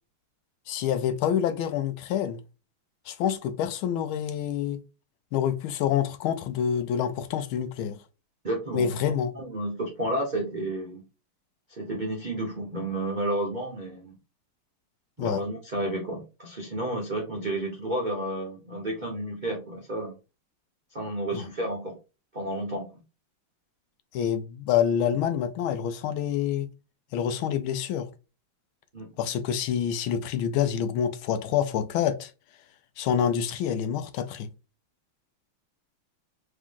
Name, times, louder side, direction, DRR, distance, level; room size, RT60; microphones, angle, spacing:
voice 1, 0.7-2.4 3.1-4.8 5.3-8.0 8.7-9.3 15.2-15.4 21.3-21.5 24.1-26.7 27.1-28.1 29.2-32.3 33.0-34.5, left 9 dB, 75° left, 1.3 m, -27 dB
voice 2, 8.4-8.9 9.3-11.0 11.7-14.2 15.2-20.1 20.9-22.0 22.3-22.9 28.9-29.1, right 1 dB, 55° right, 0.5 m, -31 dB
3.6 x 3.2 x 3.6 m
omnidirectional pair, 2.4 m